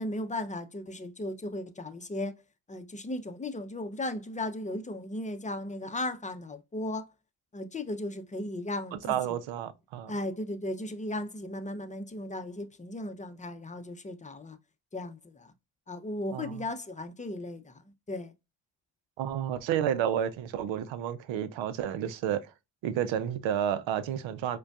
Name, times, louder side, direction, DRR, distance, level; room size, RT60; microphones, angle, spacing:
voice 1, 0.0-2.3 2.7-7.1 7.5-9.4 10.1-14.6 14.9-15.5 15.9-18.3, left 1 dB, 15° left, 0.6 m, -36 dB
voice 2, 8.9-10.1 16.3-16.6 19.2-22.5 22.8-24.6, right 10 dB, 80° right, 0.6 m, -31 dB
4.9 x 2.3 x 2.3 m
supercardioid pair, 60°, 46 cm